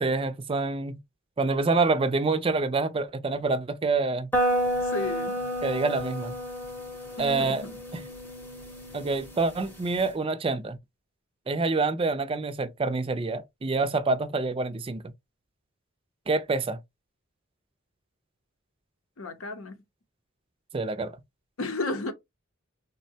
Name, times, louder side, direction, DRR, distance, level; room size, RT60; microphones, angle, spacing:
voice 1, 0.0-1.0 1.4-4.3 5.6-6.3 7.2-7.6 7.9-8.0 8.9-10.8 11.5-15.0 16.3-16.8 20.7-21.1, right 3 dB, 25° right, 0.4 m, -27 dB
sound 1, 4.3-10.1, equal, 10° left, 0.7 m, -31 dB
voice 2, 4.8-5.4 7.2-7.8 19.2-19.8 21.6-22.1, left 2 dB, 80° left, 0.7 m, -33 dB
3.6 x 2.1 x 2.7 m
head